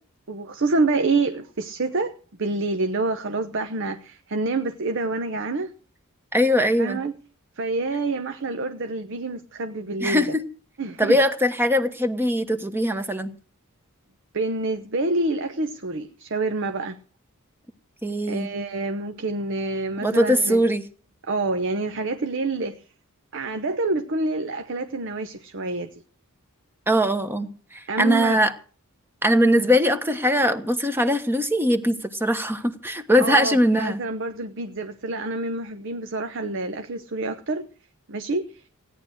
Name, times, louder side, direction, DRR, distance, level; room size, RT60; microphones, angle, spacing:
voice 1, 0.3-5.7 6.8-7.1 7.5-10.4 10.8-11.2 14.3-17.0 18.3-20.6 21.2-22.8 23.3-26.0 27.9-28.4 33.2-37.7 38.1-38.7, right 3 dB, 55° right, 8 dB, 0.9 m, -27 dB
voice 2, 6.3-7.0 10.0-10.4 11.0-13.3 18.0-18.5 20.0-20.8 26.9-28.5 29.2-34.0, equal, 10° right, 9 dB, 1.1 m, -21 dB
16.5 x 10.0 x 6.3 m, 0.40 s
head